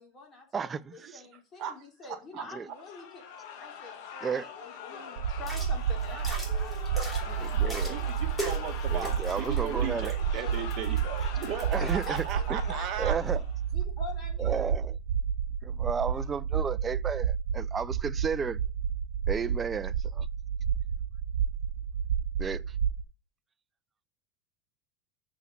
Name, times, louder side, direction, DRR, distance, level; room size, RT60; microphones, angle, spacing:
voice 1, 0.0-3.2 3.6-8.8 11.8-12.2 12.7-13.1 13.7-14.7, left 4 dB, 25° left, 3.3 m, -46 dB
voice 2, 0.5-1.2 2.5-2.7 4.2-4.5 7.3-8.0 8.9-10.1 11.7-12.2 12.5-12.6 13.0-13.4 14.4-15.0 15.6-18.6 19.3-20.3 22.4-22.6, right 6 dB, 20° right, 0.4 m, -33 dB
voice 3, 1.6-2.7 7.9-13.1, right 9 dB, 45° right, 1.7 m, -37 dB
sound 1, 2.7-13.6, left 7 dB, 60° left, 2.4 m, -43 dB
sound 2, 5.2-23.0, right 8 dB, 85° right, 0.9 m, -30 dB
sound 3, 5.4-12.3, right 1 dB, 5° left, 3.1 m, -42 dB
6.9 x 6.2 x 7.6 m
supercardioid pair, 140°, 0 cm